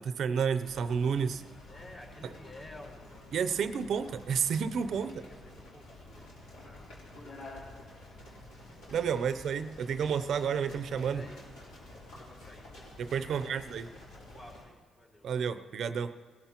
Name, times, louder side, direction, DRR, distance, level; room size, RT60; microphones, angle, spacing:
voice 1, 0.0-1.4 3.3-5.2 8.9-11.2 13.0-13.9 15.2-16.1, right 7 dB, 65° right, 12 dB, 0.5 m, -30 dB
sound 1, 0.6-14.6, left 1 dB, 90° left, 3.3 m, -50 dB
voice 2, 1.6-3.1 5.0-7.4 9.1-9.4 11.1-11.7 11.9-12.8 13.2-13.8 14.1-15.3, left 1 dB, 40° left, -3 dB, 4.2 m, -53 dB
20.0 x 12.5 x 2.9 m, 1.5 s
cardioid pair, 90°, 0 cm